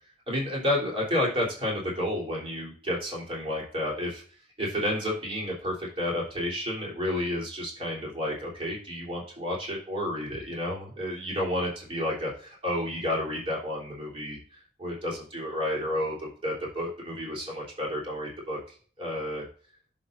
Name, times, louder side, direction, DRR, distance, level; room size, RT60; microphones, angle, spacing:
voice 1, 0.3-4.2 4.6-18.6 19.0-19.4, left 1 dB, 35° right, -4 dB, 3.5 m, -31 dB
10.5 x 6.1 x 2.6 m, 0.43 s
head